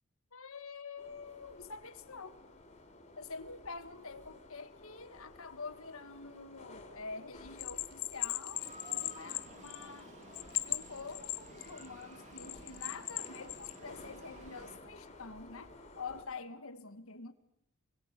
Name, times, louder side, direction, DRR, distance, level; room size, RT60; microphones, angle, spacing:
voice 1, 0.3-2.4 3.2-10.1 10.6-17.3, left 4 dB, 65° left, 1.8 m, -47 dB
sound 1, 1.0-16.2, left 2 dB, 30° left, 4.2 m, -54 dB
Bell, 7.6-10.0 10.3-11.9 12.4-13.7, left 16 dB, 80° left, 1.2 m, -37 dB
sound 2, 8.5-14.8, right 1 dB, 30° right, 3.0 m, -54 dB
29.0 x 21.5 x 8.3 m
head